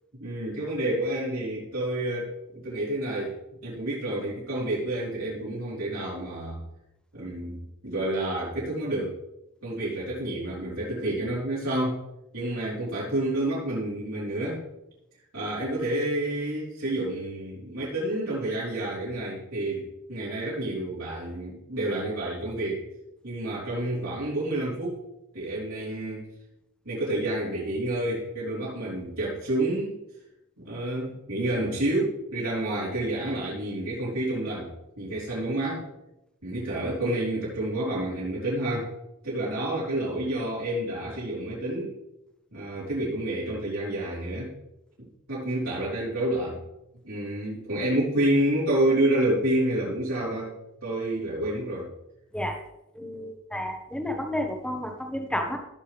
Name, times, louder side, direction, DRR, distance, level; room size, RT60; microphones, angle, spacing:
voice 1, 0.1-3.4 3.6-6.6 7.1-9.2 9.6-12.0 12.3-14.6 15.3-22.8 23.2-25.0 25.3-26.3 26.8-29.9 30.6-34.7 35.0-35.8 36.4-38.9 39.2-41.9 42.5-44.5 45.0-46.6 47.0-51.9, right 1 dB, 75° right, -9 dB, 4.0 m, -29 dB
voice 2, 52.9-55.6, left 1 dB, 5° left, 3 dB, 1.1 m, -31 dB
16.0 x 6.6 x 3.4 m, 0.89 s
head